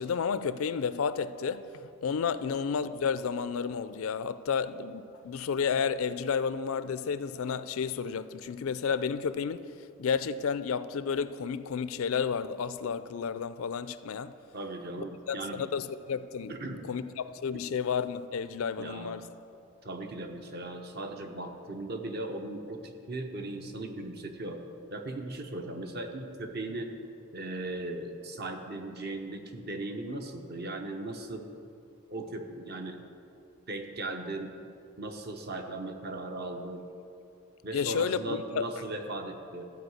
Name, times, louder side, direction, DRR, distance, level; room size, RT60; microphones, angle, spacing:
voice 1, 0.0-1.7 2.0-9.6 10.0-14.3 15.3-19.3 37.7-38.6, left 6 dB, 70° left, 0.4 m, -31 dB
voice 2, 2.2-2.5 14.5-15.6 16.5-16.8 17.5-17.6 18.8-19.1 19.8-24.6 24.9-26.9 27.3-31.5 32.1-33.0 33.7-34.5 35.0-36.8 37.6-39.6, right 2 dB, 45° right, 0.8 m, -38 dB
13.0 x 4.8 x 7.9 m
head